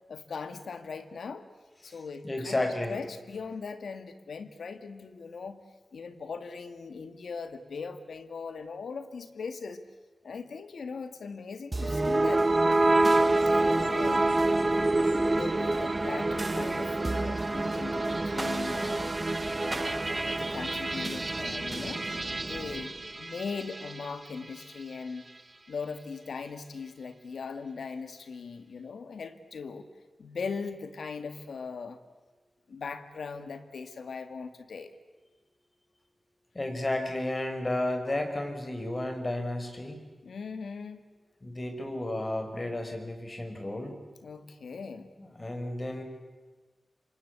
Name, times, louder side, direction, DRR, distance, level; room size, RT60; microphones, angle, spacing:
voice 1, 0.1-1.5 1.8-5.6 5.9-9.8 10.2-12.5 13.5-14.3 14.9-19.2 19.6-22.0 22.4-25.2 25.7-29.9 30.2-32.0 32.7-34.9 40.2-41.0 44.2-45.1, left 5 dB, 85° left, 10 dB, 2.0 m, -39 dB
voice 2, 1.9-3.0 15.3-15.4 36.5-40.0 41.4-43.9 45.2-46.0, left 1 dB, 35° left, 6 dB, 5.7 m, -32 dB
sound 1, 11.7-24.0, right 2 dB, 35° right, 1.0 m, -27 dB
27.0 x 25.0 x 8.4 m, 1.3 s
cardioid pair, 55°, 0 cm